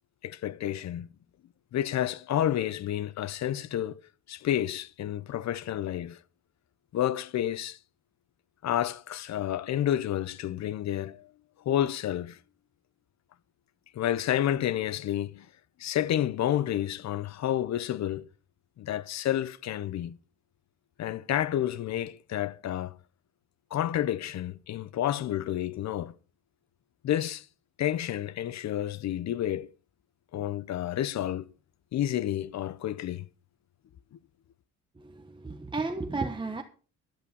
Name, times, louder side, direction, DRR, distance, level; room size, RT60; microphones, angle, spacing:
voice 1, 0.2-1.1 1.7-4.0 4.3-6.2 6.9-7.8 8.6-11.3 11.6-12.4 13.9-15.5 15.8-18.3 18.8-20.2 21.0-23.0 23.7-26.1 27.0-27.5 27.8-29.7 30.3-31.5 31.9-33.3, left 11 dB, 60° left, 0.8 m, -30 dB
voice 2, 35.0-36.6, right 3 dB, 15° right, 1.2 m, -33 dB
12.0 x 10.0 x 5.4 m
cardioid pair, 90°, 30 cm